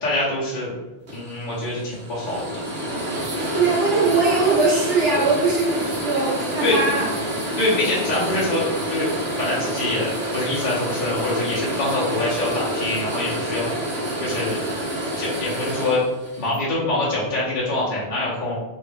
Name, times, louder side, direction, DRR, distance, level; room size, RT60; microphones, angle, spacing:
voice 1, 0.0-0.8 1.1-2.6 3.5-3.6 6.6-6.8 7.6-9.1 9.4-13.7 14.2-14.6 15.1-16.0 16.4-18.6, left 2 dB, 50° left, -8 dB, 1.0 m, -25 dB
sound 1, 1.1-16.6, right 1 dB, 60° right, 1.2 m, -28 dB
voice 2, 3.5-7.2, right 3 dB, 80° right, -5 dB, 1.3 m, -21 dB
3.1 x 2.6 x 3.3 m, 1.0 s
omnidirectional pair, 1.2 m